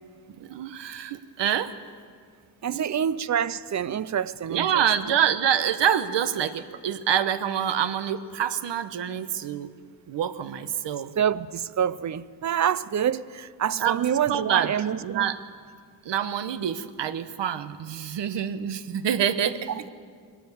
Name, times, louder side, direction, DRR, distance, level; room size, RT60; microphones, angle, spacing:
voice 1, 0.3-1.7 2.7-2.9 4.5-9.7 10.1-11.2 13.8-14.7 15.0-15.4 16.0-19.7, right 9 dB, 70° right, 1.1 m, -26 dB
voice 2, 2.6-4.8 11.2-15.4 19.7-19.9, right 9 dB, 40° right, 0.5 m, -27 dB
22.0 x 18.0 x 7.0 m
wide cardioid pair, 150°, 44 cm